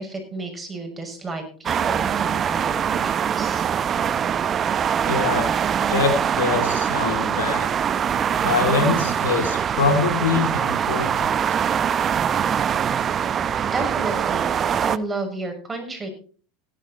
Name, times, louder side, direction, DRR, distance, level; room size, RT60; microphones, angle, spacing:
voice 1, 0.0-3.6 13.6-16.1, right 3 dB, 20° right, 4 dB, 6.6 m, -32 dB
sound 1, 1.7-15.0, right 8 dB, 35° right, 0.7 m, -23 dB
voice 2, 5.0-5.5 5.9-7.7 8.4-11.3, left 4 dB, 85° left, 8 dB, 2.9 m, -24 dB
16.5 x 11.0 x 4.4 m, 0.41 s
hypercardioid pair, 90°, 0 cm